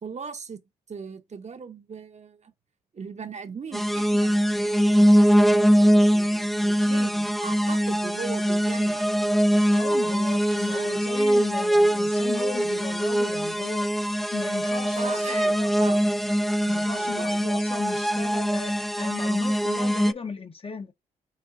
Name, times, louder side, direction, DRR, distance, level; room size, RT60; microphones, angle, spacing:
voice 1, 0.0-0.6 0.9-2.5 2.9-9.1 9.9-10.9 14.8-16.1 16.7-17.5, right 5 dB, 45° right, 0.8 m, -40 dB
sound 1, 3.7-20.1, equal, ahead, 0.3 m, -22 dB
voice 2, 9.7-13.9 14.3-16.0 16.7-20.9, left 4 dB, 35° left, 0.8 m, -36 dB
5.8 x 2.7 x 2.6 m
supercardioid pair, 55°, 17 cm